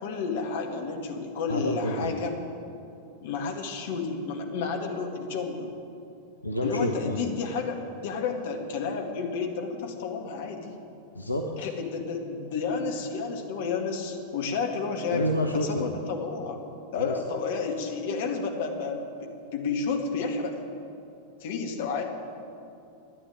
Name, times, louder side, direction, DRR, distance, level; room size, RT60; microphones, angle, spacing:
voice 1, 0.0-2.3 3.2-5.7 6.6-10.7 11.6-15.2 15.6-16.7 16.9-20.6 21.4-22.0, left 5 dB, 55° left, 2 dB, 2.1 m, -31 dB
voice 2, 1.5-2.1 6.4-7.2 11.1-11.7 15.1-15.9 17.0-17.2, left 1 dB, 85° left, 1 dB, 1.0 m, -28 dB
13.0 x 10.0 x 8.9 m, 2.7 s
figure-of-eight pair, 90°, 0 cm